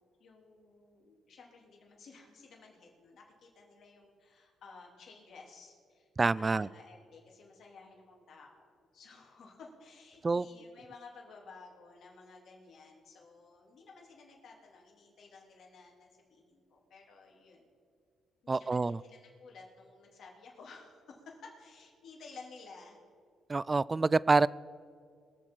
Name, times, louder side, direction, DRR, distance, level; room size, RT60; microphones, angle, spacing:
voice 1, 0.2-6.1 6.3-17.6 18.4-23.0, left 4 dB, 65° left, -1 dB, 3.3 m, -54 dB
voice 2, 6.2-6.7 10.2-10.5 18.5-19.0 23.5-24.5, right 3 dB, 25° right, 21 dB, 0.3 m, -27 dB
22.0 x 7.4 x 5.7 m, 2.1 s
cardioid pair, 90°, 0 cm